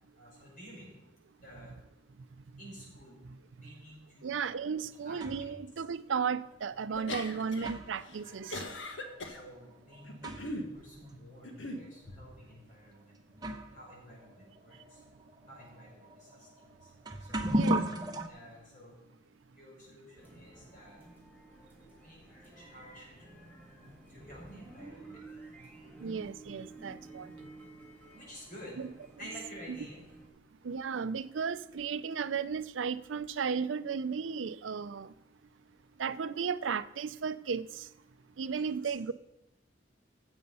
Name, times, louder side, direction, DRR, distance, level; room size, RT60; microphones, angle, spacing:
voice 1, 0.2-0.9 1.4-1.8 2.6-4.4 5.0-5.5 8.2-8.3 9.3-13.1 13.7-15.0 15.5-16.9 17.2-17.7 18.3-18.9 19.5-21.0 22.0-25.2 28.1-28.8 29.2-30.0, equal, 45° left, 5.9 m, -51 dB
voice 2, 4.2-8.6 17.5-17.8 26.0-27.3 28.8-28.9 29.7-29.8 30.6-35.1 36.0-37.9 38.4-39.1, right 6 dB, 85° right, 0.5 m, -34 dB
sound 1, 4.5-5.6 6.5-6.6 7.3-10.7 11.0-11.1 11.9-12.1 12.9-13.0 13.3-18.3, right 1 dB, 20° right, 0.9 m, -37 dB
sound 2, 6.9-7.7 8.1-9.4 10.0-10.7 11.4-11.8, left 1 dB, 85° left, 1.5 m, -39 dB
sound 3, 20.1-30.3, right 2 dB, 10° left, 2.9 m, -52 dB
15.0 x 7.9 x 5.5 m
head